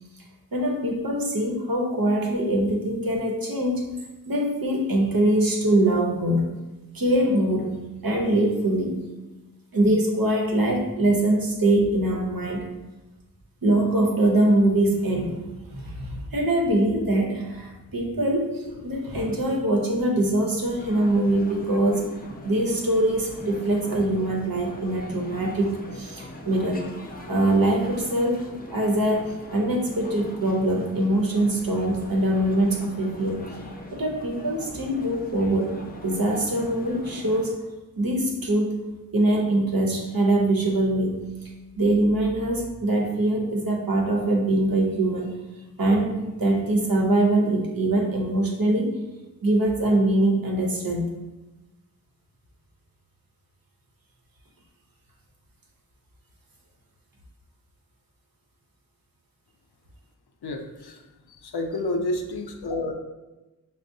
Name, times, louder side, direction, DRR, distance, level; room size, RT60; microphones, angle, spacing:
voice 1, 0.5-3.9 4.3-6.5 6.9-9.0 9.7-12.7 13.6-22.0 22.4-26.8 27.3-33.5 33.9-37.5 38.0-38.8 39.1-41.3 41.8-45.3 45.8-48.9 49.4-51.0, right 1 dB, 65° right, 0 dB, 0.8 m, -23 dB
sound 1, 20.8-37.5, left 1 dB, 25° left, 0.5 m, -42 dB
voice 2, 60.4-61.0 61.3-62.9, left 2 dB, 85° left, 4 dB, 0.5 m, -29 dB
5.5 x 2.0 x 2.6 m, 1.1 s
wide cardioid pair, 40°, 37 cm